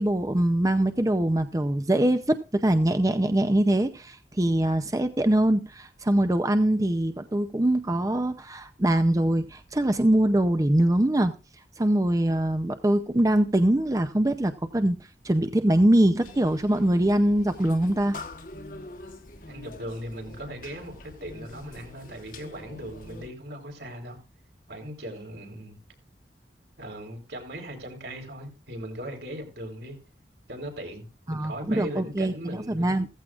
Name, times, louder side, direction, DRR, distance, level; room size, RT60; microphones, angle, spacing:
voice 1, 0.0-11.3 11.8-15.0 15.2-18.2 31.3-33.1, right 1 dB, 20° right, 0.6 m, -23 dB
sound 1, 16.2-23.3, left 2 dB, 50° left, 1.2 m, -44 dB
voice 2, 19.5-24.2 24.7-25.8 26.8-30.0 30.5-33.0, right 1 dB, 75° right, 4.2 m, -38 dB
15.5 x 14.5 x 2.4 m
head